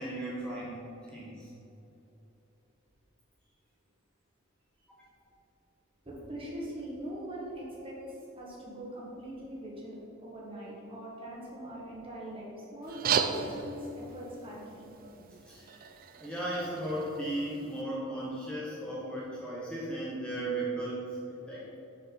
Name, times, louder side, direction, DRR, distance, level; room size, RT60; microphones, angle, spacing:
voice 1, 0.0-1.5 5.2-5.3 15.5-15.8 16.2-21.2 21.5-21.8, right 1 dB, 5° left, -7 dB, 0.9 m, -36 dB
voice 2, 6.0-14.9, right 1 dB, 25° right, -5 dB, 1.7 m, -42 dB
sound 1, 12.8-17.8, right 6 dB, 45° right, 0.4 m, -36 dB
6.7 x 6.6 x 4.2 m, 3.0 s
head